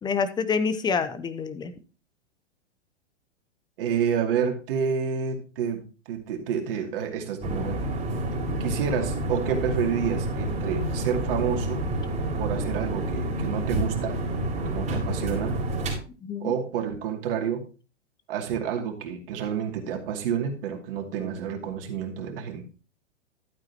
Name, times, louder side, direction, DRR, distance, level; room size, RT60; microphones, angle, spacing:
voice 1, 0.0-1.7 16.2-16.5, left 5 dB, 10° left, 12 dB, 0.7 m, -27 dB
voice 2, 3.8-7.8 8.6-11.8 12.4-14.2 14.6-15.6 16.4-17.7 18.3-22.6, right 7 dB, 50° right, 4 dB, 2.6 m, -29 dB
sound 1, 7.4-15.9, right 1 dB, 20° right, 4.2 m, -29 dB
12.0 x 8.8 x 2.9 m, 0.33 s
figure-of-eight pair, 110°, 35 cm